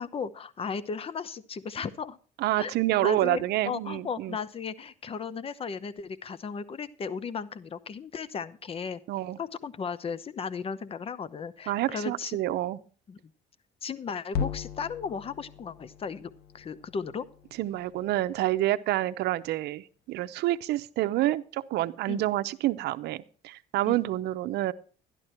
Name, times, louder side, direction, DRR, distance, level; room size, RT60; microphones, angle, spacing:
voice 1, 0.0-2.2 2.6-2.7 3.0-9.0 9.4-12.4 13.1-13.2 13.8-17.3 22.1-22.3 23.9-24.0, left 6 dB, 35° left, 16 dB, 0.8 m, -35 dB
voice 2, 2.4-4.3 9.1-9.4 11.7-12.8 17.6-24.7, right 15 dB, 75° right, 12 dB, 0.7 m, -28 dB
sound 1, 14.3-18.7, left 7 dB, 75° left, 0.9 m, -38 dB
11.5 x 11.5 x 4.4 m, 0.40 s
cardioid pair, 110°, 17 cm